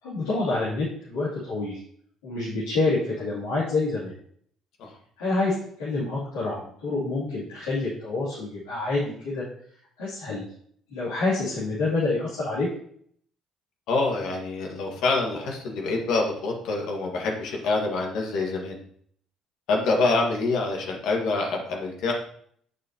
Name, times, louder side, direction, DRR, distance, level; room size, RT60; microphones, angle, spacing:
voice 1, 0.0-1.8 2.2-4.1 5.2-9.4 10.0-10.4 10.9-12.7, left 3 dB, 85° left, -10 dB, 3.0 m, -27 dB
voice 2, 13.9-18.8 19.7-22.1, left 3 dB, 70° left, 0 dB, 1.9 m, -26 dB
8.6 x 6.3 x 3.0 m, 0.62 s
hypercardioid pair, 55°, 0 cm